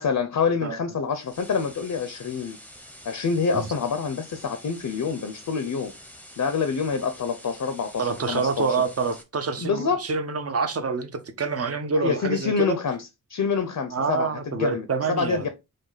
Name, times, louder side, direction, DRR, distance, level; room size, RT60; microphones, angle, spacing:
voice 1, 0.0-2.6 3.1-5.9 6.4-8.7 9.6-10.0 12.0-15.5, left 5 dB, 55° left, 0.6 m, -26 dB
sound 1, 1.1-9.2, equal, 5° left, 0.7 m, -47 dB
voice 2, 8.0-12.8 13.9-15.5, right 4 dB, 40° right, 0.7 m, -27 dB
5.0 x 2.3 x 3.9 m
wide cardioid pair, 135°, 38 cm